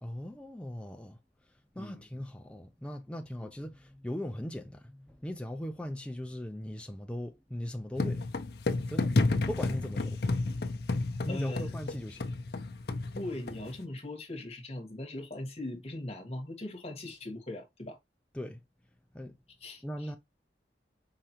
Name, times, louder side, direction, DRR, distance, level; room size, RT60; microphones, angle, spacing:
voice 1, 0.0-1.2 1.8-8.2 8.9-9.1 9.5-10.2 10.6-12.2 18.3-18.6 19.1-19.4 19.8-20.2, left 1 dB, 5° left, 0.4 m, -39 dB
sound 1, 8.0-13.8, left 3 dB, 60° left, 0.6 m, -31 dB
voice 2, 11.3-11.7 13.1-18.0 19.6-20.1, left 1 dB, 35° left, 1.4 m, -39 dB
4.9 x 3.2 x 2.8 m
head